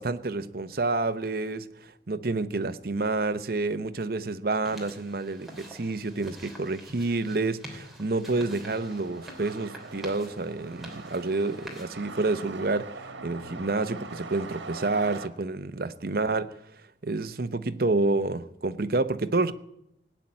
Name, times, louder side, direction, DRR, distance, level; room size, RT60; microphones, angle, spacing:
voice 1, 0.0-16.5 17.0-19.5, right 3 dB, 55° right, 0.8 m, -29 dB
sound 1, 4.6-11.8, equal, ahead, 3.0 m, -46 dB
sound 2, 8.7-15.3, right 3 dB, 90° right, 1.5 m, -42 dB
18.0 x 9.1 x 8.6 m
head